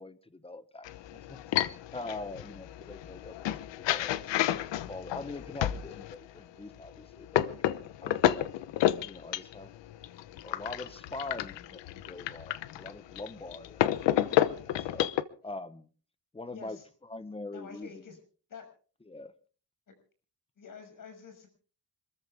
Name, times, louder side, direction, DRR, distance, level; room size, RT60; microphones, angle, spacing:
voice 1, 0.0-1.4 1.9-4.1 4.9-7.6 8.0-8.5 9.0-9.7 10.4-15.1 15.4-15.9 16.3-16.8 17.1-17.9 19.1-19.3, left 2 dB, 15° left, 1.1 m, -43 dB
sound 1, 0.9-6.2 6.8-15.2, left 12 dB, 85° left, 1.1 m, -31 dB
voice 2, 16.4-16.9 17.5-18.2 18.5-18.7 19.9-20.0 20.6-21.5, left 5 dB, 50° left, 6.4 m, -48 dB
26.5 x 14.0 x 3.5 m
cardioid pair, 130°, 42 cm